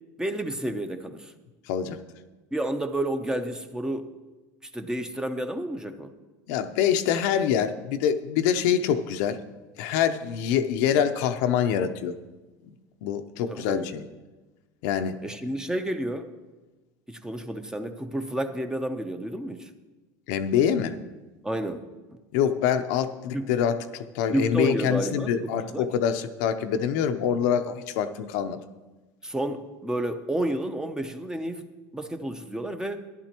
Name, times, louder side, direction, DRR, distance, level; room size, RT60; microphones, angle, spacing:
voice 1, 0.2-1.3 2.5-4.1 4.7-6.1 13.5-13.9 15.2-16.3 17.1-19.7 21.4-21.8 22.1-22.2 23.3-23.5 24.3-25.9 29.2-31.7 31.9-33.0, right 1 dB, 5° right, 7 dB, 0.8 m, -30 dB
voice 2, 1.7-2.0 6.5-9.4 9.8-12.1 13.0-13.9 14.8-15.2 20.3-21.0 22.3-28.6, left 8 dB, 75° left, 8 dB, 0.7 m, -25 dB
14.5 x 11.0 x 3.0 m, 1.2 s
supercardioid pair, 125°, 10 cm